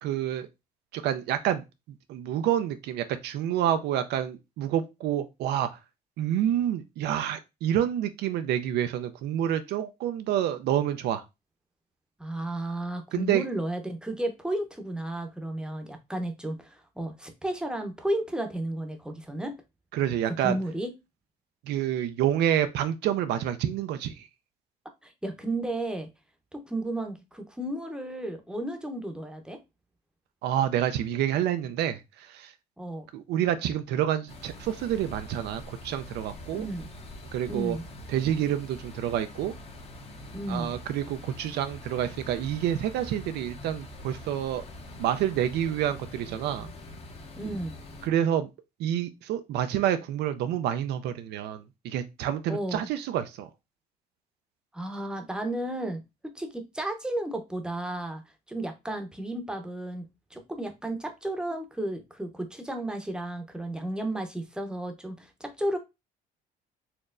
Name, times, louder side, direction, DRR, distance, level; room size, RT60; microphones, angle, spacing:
voice 1, 0.0-0.5 0.9-1.6 2.1-5.7 6.2-11.2 13.1-13.5 19.9-20.6 21.7-24.3 30.4-32.5 33.1-36.7 37.3-37.8 38.1-39.5 40.5-44.6 45.0-46.7 48.0-48.5 48.8-53.5, right 10 dB, 75° right, 0.4 m, -28 dB
voice 2, 12.2-19.5 20.2-20.9 25.0-26.1 26.5-29.6 32.8-33.1 36.5-36.9 37.5-37.8 40.3-40.7 47.4-47.7 52.5-52.9 54.7-56.0 56.3-58.2 58.5-60.0 60.3-65.8, right 1 dB, 5° right, 0.8 m, -33 dB
sound 1, 34.3-48.1, left 1 dB, 35° left, 0.9 m, -44 dB
4.3 x 3.0 x 2.5 m
cardioid pair, 110°, 17 cm